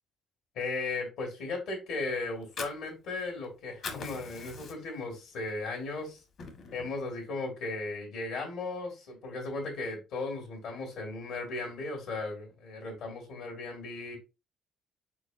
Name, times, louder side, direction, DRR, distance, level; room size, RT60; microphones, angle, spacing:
voice 1, 0.5-6.2 6.7-14.2, left 3 dB, 75° left, 1 dB, 1.9 m, -36 dB
Fire, 2.3-3.5 3.7-5.1 5.5-5.6 6.0-7.0, left 4 dB, 50° left, 1.0 m, -42 dB
4.6 x 4.5 x 2.5 m, 0.28 s
cardioid pair, 165°, 0 cm